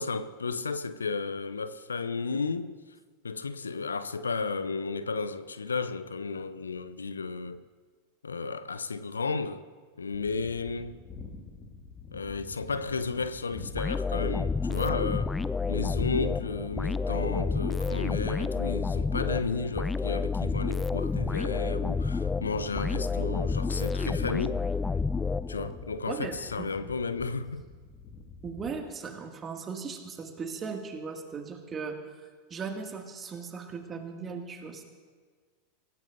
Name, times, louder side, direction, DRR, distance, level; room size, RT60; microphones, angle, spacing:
voice 1, 0.0-2.8 3.2-7.6 8.2-9.7 10.0-11.0 12.1-15.4 15.7-24.6 25.5-27.6, left 4 dB, 80° left, 0.6 m, -33 dB
sound 1, 10.1-28.8, left 3 dB, 30° left, 2.0 m, -46 dB
sound 2, 13.8-25.9, left 4 dB, 10° left, 0.4 m, -30 dB
voice 2, 26.1-26.7 28.4-34.8, right 5 dB, 25° right, 2.1 m, -38 dB
24.5 x 16.5 x 2.6 m
figure-of-eight pair, 90°, 0 cm